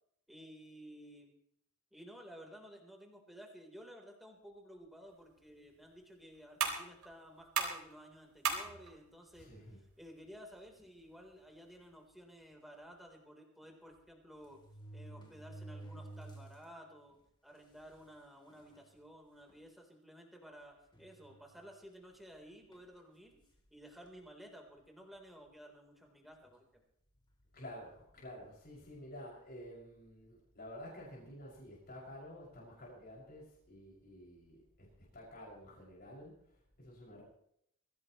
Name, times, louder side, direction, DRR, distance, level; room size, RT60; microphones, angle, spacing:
voice 1, 0.3-1.3 1.9-9.5 10.0-14.6 14.9-23.4 23.7-26.8, equal, ahead, 1 dB, 3.7 m, -54 dB
sound 1, 5.1-12.1, right 6 dB, 90° right, 3.8 m, -42 dB
voice 2, 9.4-9.8 27.5-37.2, equal, 45° left, -4 dB, 6.1 m, -51 dB
sound 2, 10.8-11.1 11.8-11.9 12.2-12.3 13.6-13.7 14.4-16.7 17.1-17.2 18.0-18.1 18.5-18.9 19.5-19.6 20.9-21.7 22.7-23.0, right 2 dB, 20° left, 2.9 m, -51 dB
23.5 x 16.5 x 3.1 m, 0.71 s
head